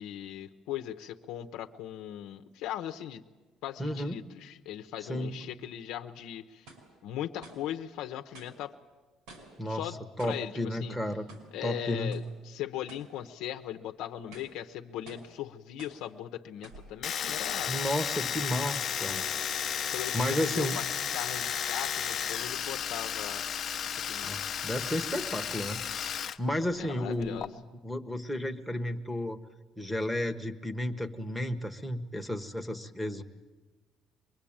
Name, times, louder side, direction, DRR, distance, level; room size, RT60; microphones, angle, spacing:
voice 1, 0.0-3.2 3.6-6.7 7.0-8.7 9.6-11.0 11.5-17.7 19.9-20.8 21.1-23.4 23.8-24.4 26.8-27.5, left 11 dB, 75° left, 6 dB, 0.9 m, -39 dB
voice 2, 3.8-4.2 5.1-5.4 9.6-9.9 10.2-11.3 11.6-12.2 17.7-19.2 20.1-20.8 24.2-25.8 26.4-27.4 27.8-29.4 29.8-33.2, left 1 dB, ahead, 10 dB, 1.1 m, -32 dB
sound 1, 6.7-6.9 7.4-7.7 8.3-8.6 9.3-9.6 10.2-10.5 11.3-11.6 12.1-12.4 12.9-13.2 13.6-13.7 14.2-14.6 15.1-15.3 15.8-16.1 16.6-16.9 17.3-17.6 18.3-18.4 19.2-19.5, right 2 dB, 85° right, 5.6 m, -51 dB
Domestic sounds home sounds, 17.0-26.4 26.6-27.5, left 8 dB, 35° left, 0.8 m, -33 dB
24.5 x 22.0 x 8.8 m, 1.2 s
cardioid pair, 165°, 0 cm